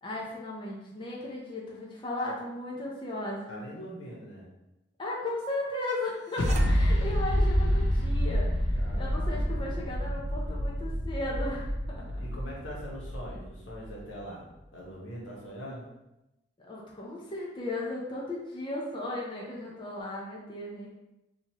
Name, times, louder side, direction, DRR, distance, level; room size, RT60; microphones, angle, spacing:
voice 1, 0.0-3.6 5.0-12.2 16.6-20.9, left 2 dB, 25° left, -4 dB, 0.6 m, -36 dB
voice 2, 3.5-4.5 8.7-9.6 12.2-14.5 14.7-15.9, equal, 90° left, -4 dB, 1.3 m, -42 dB
sound 1, 6.3-8.3, right 1 dB, 40° right, 0.3 m, -36 dB
sound 2, 6.4-13.9, equal, 65° left, 0.6 m, -28 dB
4.2 x 2.8 x 3.0 m, 0.93 s
head